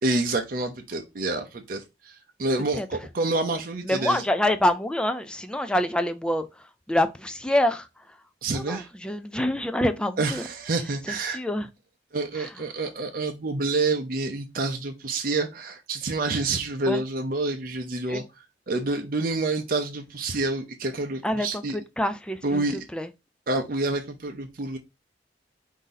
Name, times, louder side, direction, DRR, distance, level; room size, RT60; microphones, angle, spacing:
voice 1, 0.0-4.2 8.4-8.9 10.2-11.4 12.1-18.2 18.7-21.8 22.4-22.8 23.5-24.8, right 2 dB, 50° right, 0.6 m, -28 dB
voice 2, 3.9-8.0 8.5-10.5 11.3-11.7 12.4-12.5 16.9-17.0 18.1-18.2 21.2-22.6 22.9-23.1, left 1 dB, 5° left, 0.3 m, -26 dB
4.9 x 2.7 x 3.9 m
head